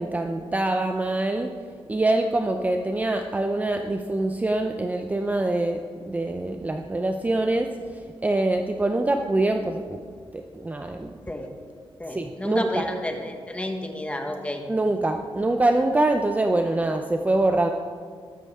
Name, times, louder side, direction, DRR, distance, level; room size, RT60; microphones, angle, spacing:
voice 1, 0.0-1.5 1.9-5.8 6.1-10.0 10.3-11.1 12.1-12.8 14.7-17.7, right 2 dB, 15° right, 5 dB, 0.5 m, -24 dB
voice 2, 12.0-14.6, left 1 dB, 15° left, 4 dB, 1.3 m, -31 dB
14.0 x 12.5 x 3.6 m, 2.1 s
wide cardioid pair, 140°, 10 cm